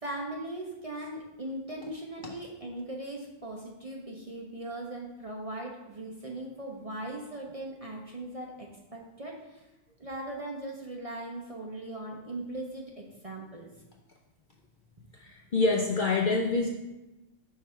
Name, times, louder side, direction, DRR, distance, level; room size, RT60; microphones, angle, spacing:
voice 1, 0.0-9.6 10.0-13.7, right 1 dB, 35° right, -1 dB, 0.7 m, -39 dB
voice 2, 15.2-16.7, left 3 dB, 50° left, -1 dB, 0.6 m, -27 dB
5.7 x 4.8 x 4.4 m, 1.0 s
omnidirectional pair, 1.4 m